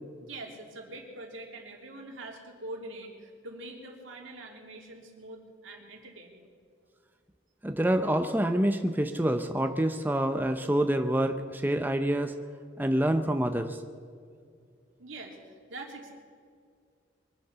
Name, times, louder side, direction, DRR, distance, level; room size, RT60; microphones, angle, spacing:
voice 1, 0.2-6.5 15.0-16.1, right 2 dB, 75° right, 0 dB, 3.0 m, -44 dB
voice 2, 7.6-12.3 12.8-13.8, right 1 dB, 10° right, 6 dB, 0.6 m, -27 dB
23.5 x 8.5 x 6.9 m, 2.2 s
head